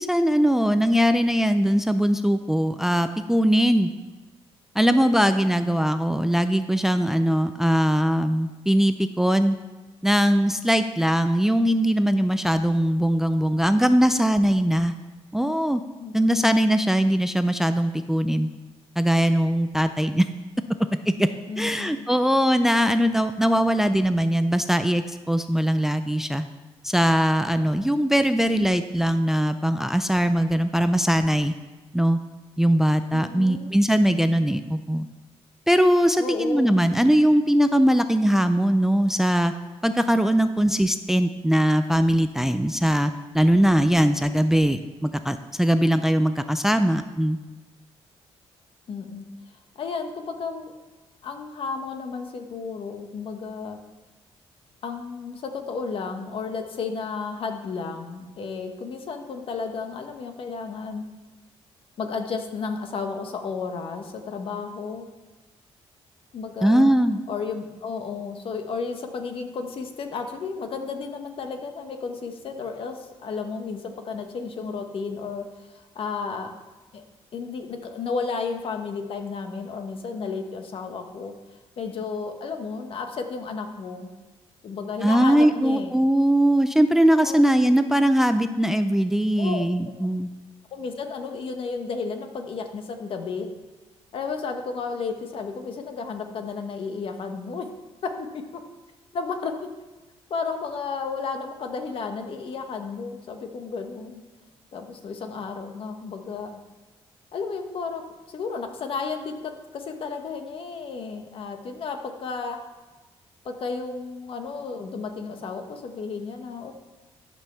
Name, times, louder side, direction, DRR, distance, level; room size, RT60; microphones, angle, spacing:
voice 1, 0.0-3.9 4.8-9.6 10.0-14.9 15.3-15.8 16.1-18.5 19.0-20.3 21.1-21.3 21.6-26.5 26.8-31.5 31.9-32.2 32.6-35.1 35.7-39.5 39.8-47.4 66.6-67.2 85.0-90.3, equal, 5° right, 9 dB, 0.4 m, -21 dB
voice 2, 4.8-5.4 16.0-16.5 21.5-22.0 33.1-33.7 36.2-36.9 48.9-49.3 49.8-50.7 51.2-53.8 54.8-61.0 62.0-65.1 66.3-66.9 67.3-76.5 76.9-77.0 77.3-81.3 81.8-84.1 84.6-85.9 87.2-87.4 89.4-89.6 90.7-93.5 94.1-97.7 98.0-98.6 99.1-99.7 100.3-104.2 104.7-106.6 107.3-112.6 113.4-116.7, left 5 dB, 55° left, 5 dB, 1.3 m, -33 dB
12.0 x 5.5 x 6.8 m, 1.2 s
cardioid pair, 120°, 11 cm